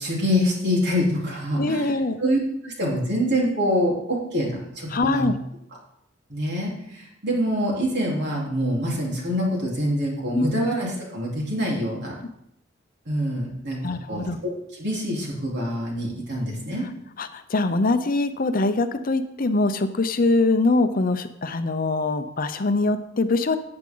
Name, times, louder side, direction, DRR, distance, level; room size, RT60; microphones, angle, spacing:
voice 1, 0.0-5.3 6.3-12.1 13.1-13.8 14.1-16.8, equal, 60° right, -3 dB, 3.8 m, -25 dB
voice 2, 1.6-2.2 4.9-5.4 10.3-10.5 13.8-14.4 17.2-23.6, left 2 dB, 45° left, 9 dB, 0.7 m, -23 dB
14.5 x 8.8 x 3.9 m, 0.78 s
head